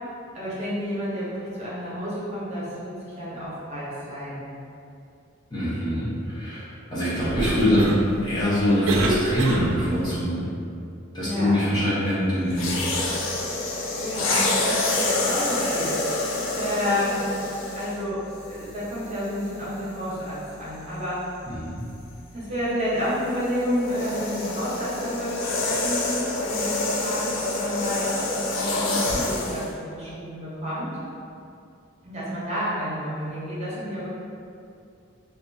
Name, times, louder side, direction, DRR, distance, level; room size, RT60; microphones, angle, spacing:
voice 1, 0.3-4.5 11.2-11.6 13.4-13.5 14.0-16.2 16.5-17.3 17.8-21.2 22.3-26.1 26.5-30.9 32.0-34.1, equal, 35° right, -9 dB, 0.7 m, -30 dB
voice 2, 5.5-10.5 11.1-12.7 21.5-21.8, equal, 20° left, -11 dB, 0.7 m, -24 dB
Cough, 7.2-10.0, right 2 dB, 85° right, 0.3 m, -28 dB
sound 1, 12.5-18.0 18.8-19.1 23.0-29.7, left 2 dB, 75° left, 0.4 m, -27 dB
2.8 x 2.2 x 2.5 m, 2.4 s
head